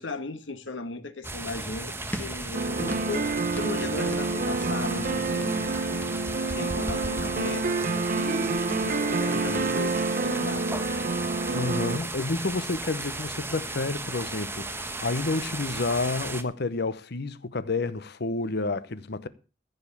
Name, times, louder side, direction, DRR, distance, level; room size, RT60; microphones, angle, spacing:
voice 1, 0.0-5.7 6.6-11.1, left 3 dB, 90° left, 1.6 m, -36 dB
sound 1, 1.2-16.4, right 2 dB, 15° right, 1.1 m, -36 dB
sound 2, 2.1-2.5 2.9-3.2 3.5-3.8 4.1-4.3 4.6-7.9, equal, 10° left, 1.6 m, -38 dB
sound 3, 2.5-12.0, right 3 dB, 50° right, 0.7 m, -28 dB
voice 2, 11.5-19.3, left 3 dB, 60° left, 0.9 m, -30 dB
14.5 x 5.4 x 8.4 m
head